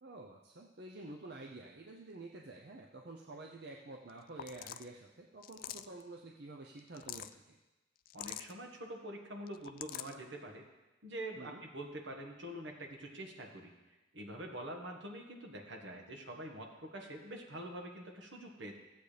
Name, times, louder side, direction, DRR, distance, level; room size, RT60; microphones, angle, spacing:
voice 1, 0.0-7.6 11.4-11.6, right 2 dB, 55° right, 0 dB, 0.7 m, -49 dB
sound 1, 4.1-4.2 4.4-4.9 5.4-6.0 6.8-7.3 8.1-8.5 9.5-10.1, left 11 dB, 50° left, 0.3 m, -45 dB
voice 2, 8.1-10.6 11.0-13.7 14.1-18.8, right 1 dB, 75° right, 2 dB, 1.5 m, -45 dB
15.0 x 8.1 x 3.4 m, 1.1 s
head